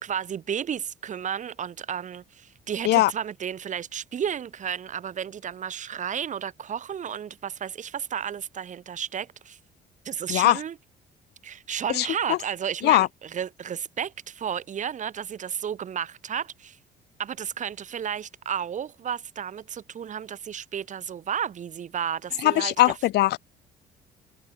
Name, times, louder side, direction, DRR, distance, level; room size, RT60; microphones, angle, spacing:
voice 1, 0.0-9.6 10.1-10.8 11.4-16.8 17.2-23.0, right 8 dB, 45° right, 5.3 m, -32 dB
voice 2, 12.0-12.4 12.8-13.1 22.4-23.4, left 16 dB, 75° left, 1.7 m, -20 dB
cardioid pair, 110°, 17 cm